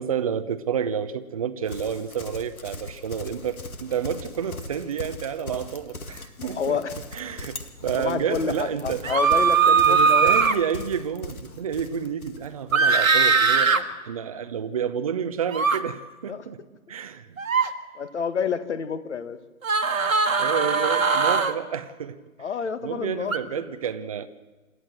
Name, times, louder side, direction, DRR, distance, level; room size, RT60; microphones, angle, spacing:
voice 1, 0.0-6.8 7.1-9.1 9.9-16.6 16.9-17.4 20.4-22.2 22.8-24.3, right 8 dB, 25° right, 10 dB, 0.7 m, -30 dB
Livestock farm animals working animals, 1.6-12.8, left 2 dB, 70° left, 2.2 m, -39 dB
voice 2, 6.4-6.9 8.0-10.4 13.7-13.8 16.3-16.4 18.0-19.4 22.4-23.5, left 6 dB, 50° left, 12 dB, 1.6 m, -29 dB
sound 1, 9.0-10.6 12.7-13.8 15.5-15.8 17.4-17.7 19.6-21.5 23.3-23.4, right 5 dB, 65° right, 1.6 m, -20 dB
27.5 x 12.5 x 7.6 m, 1.2 s
figure-of-eight pair, 135°, 44 cm